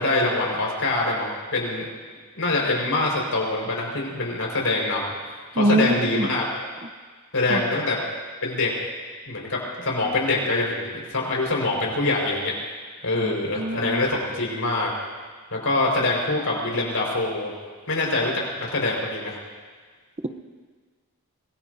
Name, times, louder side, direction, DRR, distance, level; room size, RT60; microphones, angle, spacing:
voice 1, 0.0-1.9 2.4-5.1 5.5-6.4 7.3-8.0 8.4-8.7 9.3-12.5 13.0-14.9 15.5-17.5 17.9-19.4, left 2 dB, 75° left, -2 dB, 4.9 m, -24 dB
voice 2, 5.6-6.3 7.5-7.6 13.1-14.0, right 1 dB, 30° right, 8 dB, 0.7 m, -24 dB
25.0 x 20.0 x 2.7 m, 1.5 s
head